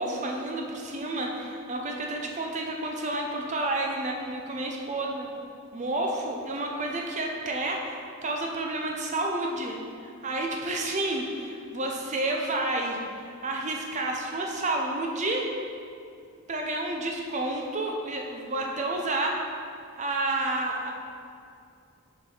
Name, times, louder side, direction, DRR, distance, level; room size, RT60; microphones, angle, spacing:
voice 1, 0.0-5.3 5.7-15.5 16.5-19.4 20.0-20.9, right 2 dB, 35° right, 0 dB, 0.7 m, -30 dB
6.5 x 4.7 x 4.0 m, 2.4 s
head